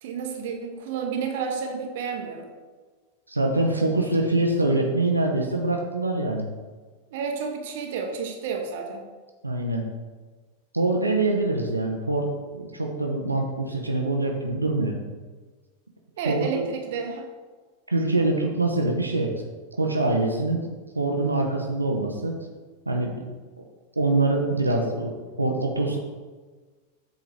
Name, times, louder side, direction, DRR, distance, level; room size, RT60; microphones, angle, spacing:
voice 1, 0.0-2.5 7.1-9.0 16.2-17.2, right 6 dB, 50° right, 3 dB, 1.0 m, -30 dB
voice 2, 3.3-6.5 9.4-9.8 10.7-12.3 12.5-14.9 16.2-16.5 17.9-19.3 19.8-20.7 21.0-22.3 22.9-23.2 24.0-26.0, right 2 dB, 85° right, 1 dB, 0.8 m, -24 dB
8.1 x 3.9 x 4.9 m, 1.4 s
figure-of-eight pair, 90°, 0 cm